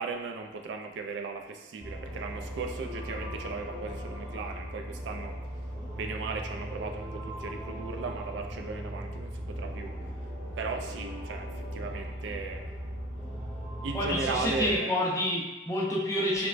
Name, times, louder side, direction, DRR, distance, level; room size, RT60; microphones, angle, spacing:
voice 1, 0.0-5.4 5.9-10.0 10.6-12.6 13.8-15.0, right 4 dB, 85° right, 4 dB, 0.3 m, -37 dB
sound 1, 1.8-14.8, equal, 5° right, 0.8 m, -38 dB
voice 2, 13.9-16.5, left 1 dB, 15° left, -5 dB, 0.4 m, -28 dB
3.0 x 2.1 x 2.4 m, 1.1 s
head